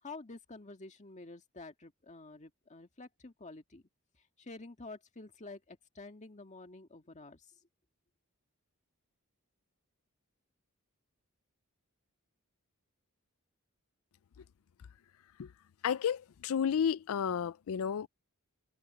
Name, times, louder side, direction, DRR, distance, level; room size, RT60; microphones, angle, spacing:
voice 1, 0.0-3.8 4.4-7.5, left 3 dB, 35° left, 1.8 m, -49 dB
voice 2, 15.8-18.1, left 7 dB, 70° left, 0.4 m, -32 dB
head